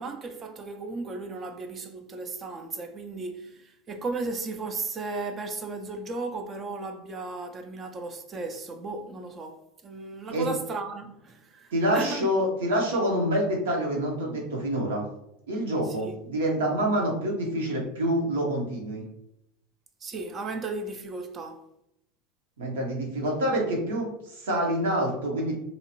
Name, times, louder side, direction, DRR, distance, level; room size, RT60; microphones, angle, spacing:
voice 1, 0.0-12.3 15.8-16.2 20.0-21.6, right 3 dB, 35° right, 0.5 m, -35 dB
voice 2, 11.7-15.0 15.5-19.0 22.6-25.6, equal, 85° right, 1.0 m, -27 dB
2.9 x 2.4 x 2.9 m
hypercardioid pair, 95°, 0 cm